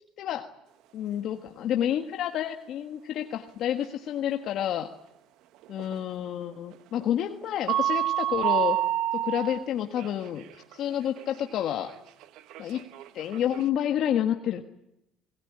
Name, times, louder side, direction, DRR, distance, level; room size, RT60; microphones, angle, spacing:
voice 1, 0.9-4.9 5.7-8.8 9.1-10.4 10.7-11.9 12.6-12.8 13.1-14.6, left 10 dB, 60° left, 5 dB, 1.6 m, -29 dB
sound 1, 4.4-4.7 5.6-6.0 6.5-7.0 7.4-9.7 10.0-13.6, right 12 dB, 70° right, 1.2 m, -28 dB
26.0 x 19.0 x 9.9 m, 0.84 s
cardioid pair, 115°, 0 cm